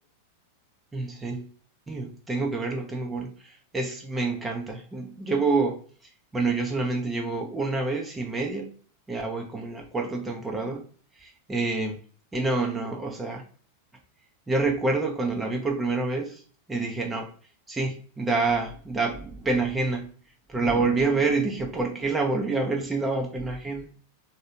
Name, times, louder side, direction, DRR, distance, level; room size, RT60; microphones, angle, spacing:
voice 1, 0.9-1.5 1.9-5.8 6.3-8.7 9.1-10.9 11.2-12.0 12.3-13.4 14.5-16.4 16.7-17.3 17.7-20.1 20.5-24.0, right 3 dB, 10° right, 1 dB, 0.6 m, -27 dB
3.1 x 2.7 x 2.8 m, 0.42 s
figure-of-eight pair, 90°, 0 cm